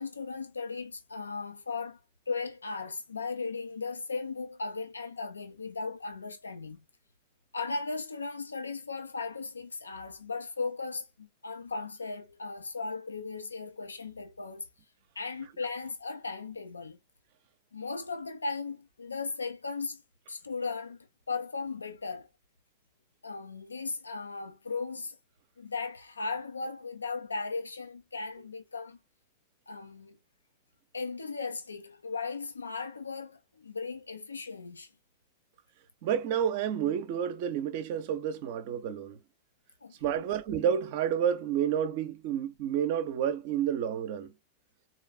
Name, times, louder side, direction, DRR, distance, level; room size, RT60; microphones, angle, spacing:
voice 1, 0.0-2.0 2.3-6.8 7.5-14.7 15.2-17.0 17.7-20.0 20.3-22.3 23.2-25.2 25.6-29.0 29.7-30.2 30.9-34.9 39.8-40.2, left 4 dB, 75° left, 0.7 m, -37 dB
voice 2, 36.0-39.2 40.0-44.3, right 9 dB, 50° right, 0.7 m, -30 dB
4.0 x 3.0 x 2.2 m
figure-of-eight pair, 90°, 0 cm